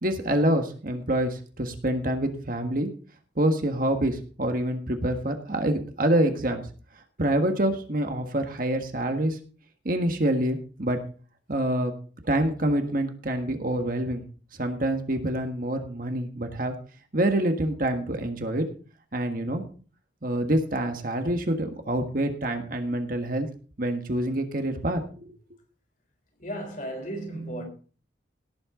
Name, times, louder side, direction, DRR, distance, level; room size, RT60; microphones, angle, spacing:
voice 1, 0.0-2.9 3.4-6.6 7.2-9.4 9.8-11.0 11.5-11.9 12.2-14.2 14.6-16.7 17.1-18.6 19.1-19.6 20.2-23.5 23.8-25.4, right 1 dB, 45° right, 1.6 m, -26 dB
voice 2, 26.4-27.7, right 1 dB, 45° left, 3.7 m, -34 dB
17.5 x 7.9 x 3.8 m
head